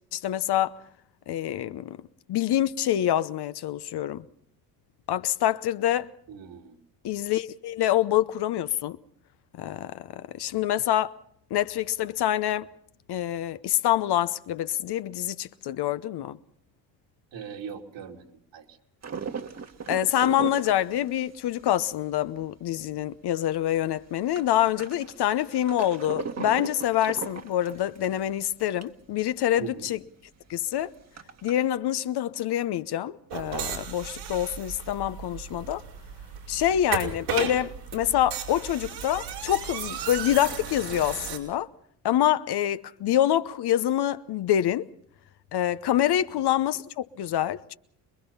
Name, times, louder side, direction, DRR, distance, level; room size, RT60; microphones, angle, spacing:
voice 1, 0.1-0.8 1.3-2.0 2.3-4.2 5.1-6.1 7.0-9.0 9.6-11.2 11.5-12.7 13.1-16.4 19.9-30.0 30.5-30.9 31.4-35.8 36.5-41.7 42.0-44.9 45.5-47.7, left 12 dB, 55° left, 0.9 m, -26 dB
voice 2, 6.3-6.8 17.3-18.2 18.5-18.8 29.6-29.9, right 7 dB, 65° right, 3.1 m, -40 dB
sound 1, 19.0-23.0 23.4-23.5 23.7-29.0 29.4-29.5 29.7-29.8 30.3-31.6, right 6 dB, 35° right, 1.6 m, -38 dB
sound 2, 33.3-41.4, right 8 dB, 90° right, 5.2 m, -35 dB
26.5 x 21.5 x 5.7 m
supercardioid pair, 70°, 47 cm